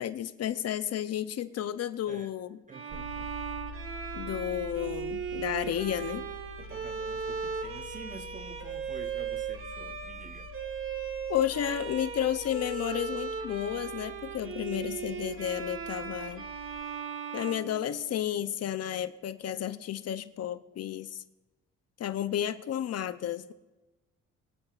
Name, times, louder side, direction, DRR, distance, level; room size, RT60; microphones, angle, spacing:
voice 1, 0.0-2.6 4.1-6.3 11.3-16.5 17.3-21.2 22.0-23.5, left 10 dB, 55° left, 0.6 m, -32 dB
voice 2, 2.7-3.3 6.6-10.5, right 4 dB, 25° right, 0.8 m, -48 dB
Bowed string instrument, 2.7-18.4, right 6 dB, 45° right, 1.5 m, -38 dB
sound 1, 2.9-16.8, equal, 70° right, 4.4 m, -47 dB
23.0 x 9.5 x 2.5 m
cardioid pair, 90°, 30 cm